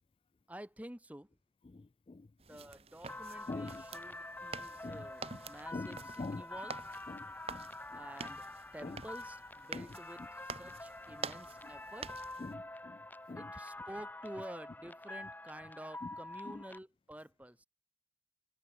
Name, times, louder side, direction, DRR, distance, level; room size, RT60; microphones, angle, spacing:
voice 1, 0.5-1.3 2.5-6.8 7.9-8.4 8.7-12.2 13.4-17.7, right 1 dB, 10° right, 1.2 m, -50 dB
voice 2, 1.7-2.3 3.5-3.8 4.8-5.1 5.7-6.5 7.1-8.0 8.8-9.0 9.7-9.9 12.4-13.0 13.3-13.4 16.0-16.1 16.5-16.6, left 3 dB, 30° left, 0.3 m, -44 dB
sound 1, 2.4-12.5, right 4 dB, 35° right, 1.8 m, -48 dB
sound 2, 3.1-16.8, left 2 dB, 10° left, 3.0 m, -47 dB
head